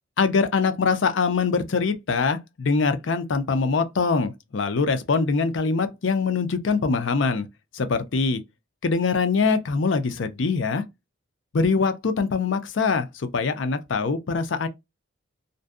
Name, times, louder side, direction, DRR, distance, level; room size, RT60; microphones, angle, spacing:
voice 1, 0.2-7.5 7.7-8.4 8.8-10.8 11.5-14.7, left 4 dB, 70° left, 0.5 m, -23 dB
2.6 x 2.2 x 2.3 m
head